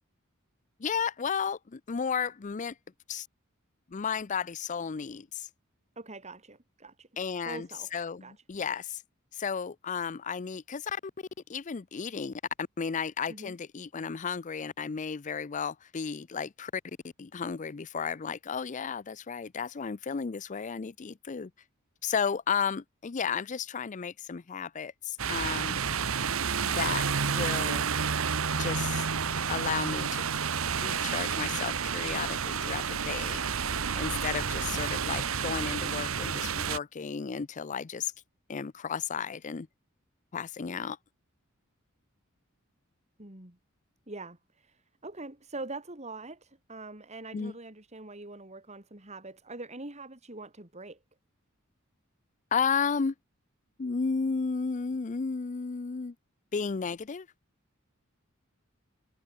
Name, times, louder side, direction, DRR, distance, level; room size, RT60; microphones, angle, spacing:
voice 1, 0.8-2.8 3.1-3.3 3.9-5.5 7.2-9.0 9.3-11.0 11.5-16.8 17.2-21.5 22.0-25.8 26.6-27.9 28.6-29.1 29.5-30.4 30.8-33.4 34.0-38.1 38.5-39.7 40.3-41.0 47.3-47.5 52.5-53.1 53.8-56.1 56.5-57.3, left 6 dB, 35° left, 0.5 m, -33 dB
voice 2, 6.0-7.1 7.5-7.9 8.2-8.3 13.3-13.5 43.2-43.6 44.1-51.0, right 2 dB, 35° right, 3.7 m, -43 dB
sound 1, 25.2-36.8, right 6 dB, 80° right, 1.2 m, -30 dB
head